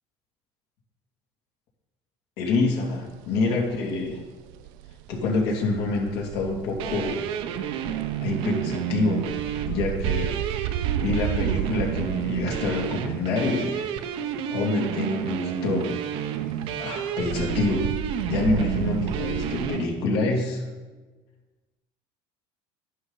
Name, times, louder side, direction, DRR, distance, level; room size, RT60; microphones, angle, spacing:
voice 1, 2.4-4.2 5.1-7.2 8.2-9.3 9.7-14.0 14.5-16.0 16.8-17.9 18.3-20.6, left 3 dB, 65° left, 0 dB, 2.6 m, -27 dB
sound 1, 2.8-3.6 3.9-14.7 15.0-19.7, right 11 dB, 85° right, 0.4 m, -33 dB
sound 2, 6.8-19.9, right 10 dB, 55° right, 0.8 m, -30 dB
11.5 x 11.0 x 4.0 m, 1.3 s
cardioid pair, 160°, 11 cm